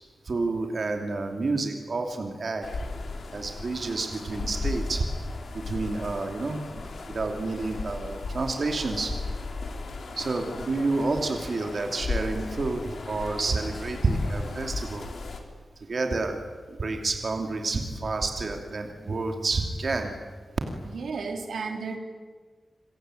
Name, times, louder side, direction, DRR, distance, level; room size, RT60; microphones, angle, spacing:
voice 1, 0.3-2.6 3.3-5.0 5.7-6.6 7.1-9.1 10.2-15.0 15.9-16.4 16.8-20.1, right 3 dB, 45° right, 4 dB, 2.8 m, -29 dB
sound 1, 2.6-15.4, left 3 dB, 65° left, 3.7 m, -35 dB
voice 2, 20.9-22.0, right 4 dB, 80° right, 4 dB, 3.6 m, -33 dB
27.5 x 23.5 x 9.2 m, 1.4 s
wide cardioid pair, 170°, 0 cm